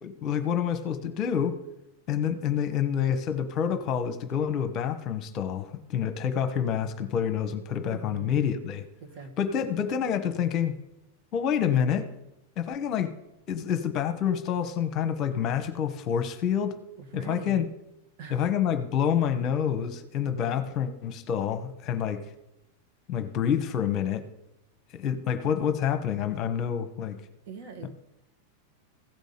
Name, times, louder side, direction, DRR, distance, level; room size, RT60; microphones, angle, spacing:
voice 1, 0.0-1.6 2.1-8.8 9.4-10.7 11.3-12.1 12.6-13.1 13.5-16.7 17.1-17.7 18.3-22.3 23.1-24.2 24.9-27.2, left 8 dB, 35° left, 9 dB, 1.1 m, -27 dB
voice 2, 7.9-8.5 9.0-9.3 17.0-17.7 18.2-18.4 27.4-27.9, right 5 dB, 45° right, 3 dB, 1.7 m, -42 dB
15.5 x 5.3 x 6.7 m, 0.88 s
figure-of-eight pair, 90°, 0 cm